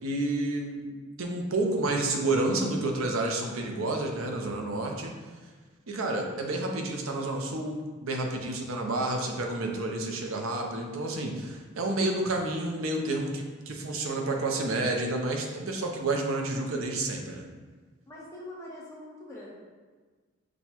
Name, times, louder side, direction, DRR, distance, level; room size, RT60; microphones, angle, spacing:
voice 1, 0.0-5.1 5.9-17.4, right 2 dB, 80° right, 2 dB, 0.6 m, -30 dB
voice 2, 18.1-19.5, left 1 dB, 15° left, -7 dB, 0.9 m, -43 dB
6.1 x 2.2 x 2.9 m, 1.4 s
head